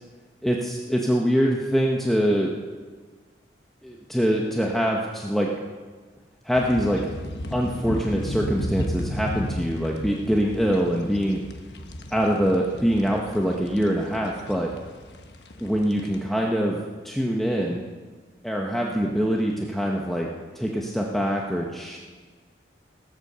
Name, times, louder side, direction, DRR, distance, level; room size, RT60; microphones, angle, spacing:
voice 1, 0.4-2.5 3.8-5.5 6.4-7.1 7.5-11.4 12.1-14.7 15.6-17.8 18.4-20.3 20.5-22.0, equal, ahead, -1 dB, 0.9 m, -24 dB
sound 1, 6.5-16.2, left 1 dB, 70° left, 1.2 m, -34 dB
18.5 x 8.2 x 6.7 m, 1.5 s
head